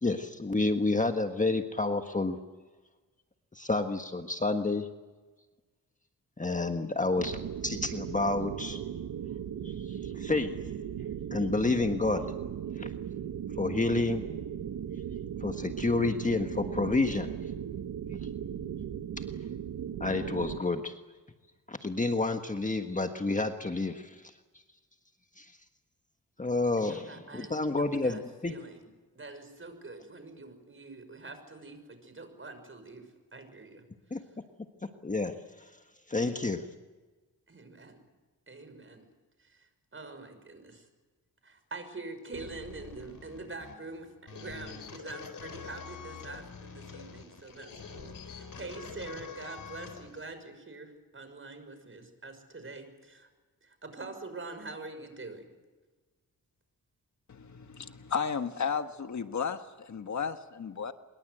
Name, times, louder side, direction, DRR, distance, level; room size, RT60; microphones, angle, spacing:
voice 1, 0.0-2.4 3.5-4.9 6.4-8.8 9.6-10.5 11.3-12.3 12.8-12.9 13.6-14.2 15.4-17.3 20.0-21.0 21.7-24.3 25.4-25.5 26.4-28.5 34.1-34.2 34.8-35.7 36.1-36.7, left 3 dB, 20° left, 6 dB, 1.5 m, -30 dB
sound 1, 7.2-20.6, right 9 dB, 85° right, 1.4 m, -37 dB
voice 2, 26.8-28.9 29.1-33.0 33.3-33.8 37.5-38.0 38.5-39.0 39.4-40.9 41.4-53.3 53.6-55.5, right 3 dB, 35° right, 9 dB, 6.0 m, -45 dB
sound 2, 42.3-50.3, left 5 dB, 70° left, 4.2 m, -46 dB
voice 3, 57.3-60.9, left 6 dB, 55° left, 8 dB, 1.4 m, -34 dB
25.0 x 22.5 x 8.0 m, 1.3 s
cardioid pair, 90°, 35 cm